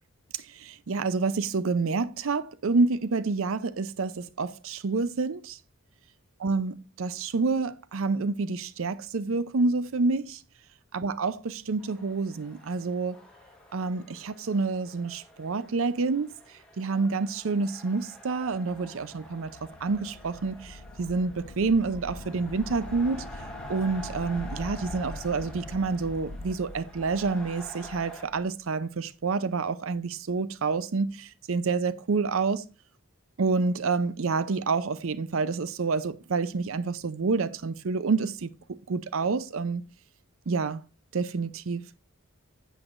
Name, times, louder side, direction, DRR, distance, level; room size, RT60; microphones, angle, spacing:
voice 1, 0.6-5.6 6.4-10.4 10.9-13.2 13.7-16.3 16.8-23.3 23.7-32.6 33.4-38.5 38.9-39.8 40.5-40.8 41.1-41.8, right 4 dB, 70° right, 0.5 m, -28 dB
sound 1, 11.8-28.3, equal, 5° left, 1.2 m, -48 dB
sound 2, 18.3-28.5, left 2 dB, 60° left, 0.7 m, -43 dB
10.5 x 8.0 x 2.5 m
head